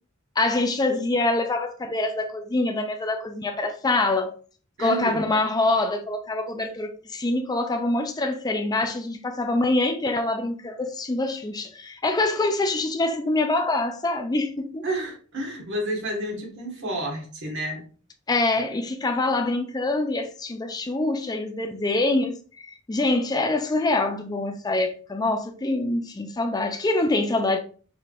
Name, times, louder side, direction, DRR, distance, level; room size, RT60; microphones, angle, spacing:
voice 1, 0.4-4.3 4.8-14.9 18.3-27.6, left 2 dB, 20° left, 0.4 m, -25 dB
voice 2, 4.8-5.3 14.8-17.8, right 1 dB, 60° right, 1.5 m, -30 dB
4.5 x 3.4 x 2.5 m
head